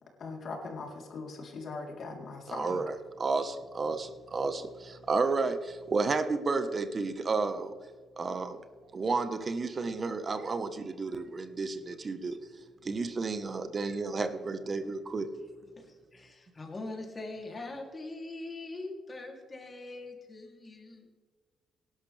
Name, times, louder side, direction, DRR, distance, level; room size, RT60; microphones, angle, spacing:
voice 1, 0.2-2.8, left 3 dB, 55° left, 0 dB, 3.7 m, -40 dB
voice 2, 2.5-7.7 8.2-8.6 8.9-12.4 12.8-15.3, right 4 dB, 35° right, 9 dB, 1.3 m, -32 dB
voice 3, 16.1-21.1, left 2 dB, 30° left, 1 dB, 3.1 m, -42 dB
18.0 x 11.5 x 3.5 m, 1.5 s
cardioid pair, 90°, 0 cm